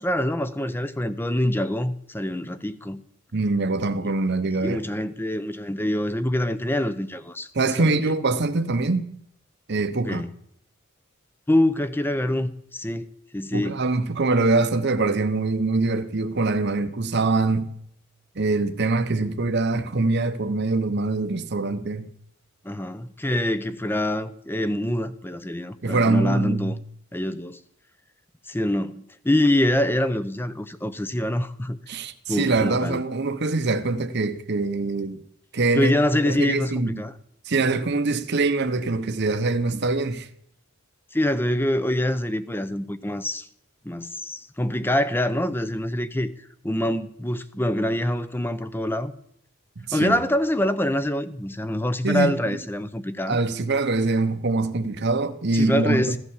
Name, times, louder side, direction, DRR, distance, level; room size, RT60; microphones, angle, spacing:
voice 1, 0.0-3.0 4.0-4.1 4.6-7.5 7.8-8.0 10.1-10.3 11.5-13.8 22.6-26.8 27.1-27.6 28.5-31.8 32.3-33.0 35.8-37.1 41.1-43.5 43.8-46.3 46.6-49.1 49.9-53.4 55.5-56.2, left 1 dB, 10° left, 0.7 m, -25 dB
voice 2, 3.3-4.8 7.5-9.1 9.7-10.2 13.5-17.7 18.4-22.1 25.8-26.8 31.9-35.2 35.5-35.9 36.3-37.0 37.5-40.3 49.8-50.2 52.0-52.3 53.3-56.2, right 3 dB, 50° right, 0.9 m, -23 dB
16.0 x 11.0 x 7.3 m
head